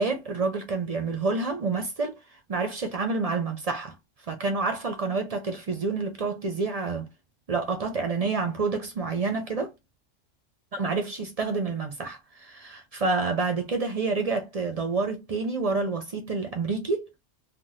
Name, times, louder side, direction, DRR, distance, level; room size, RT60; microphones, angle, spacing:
voice 1, 0.0-2.2 2.5-3.9 4.3-7.1 7.5-9.7 10.7-17.1, right 4 dB, 50° right, 0.4 m, -28 dB
3.4 x 2.2 x 2.7 m
omnidirectional pair, 1.3 m